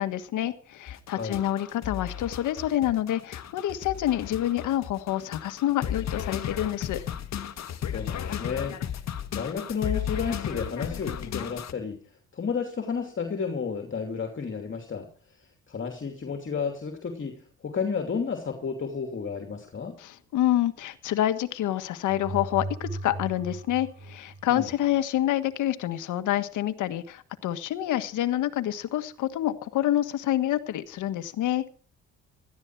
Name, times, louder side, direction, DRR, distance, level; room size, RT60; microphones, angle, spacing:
voice 1, 0.0-7.0 20.0-31.7, left 13 dB, 85° left, 10 dB, 1.5 m, -27 dB
sound 1, 0.9-11.7, left 9 dB, 65° left, 1.6 m, -34 dB
voice 2, 7.9-8.8 9.3-12.0 12.3-15.1 15.4-19.9 24.5-24.7, left 6 dB, 40° left, 3 dB, 2.8 m, -32 dB
sound 2, 22.1-25.0, right 2 dB, 35° right, 1.7 m, -37 dB
17.5 x 13.0 x 4.7 m, 0.42 s
cardioid pair, 90°, 30 cm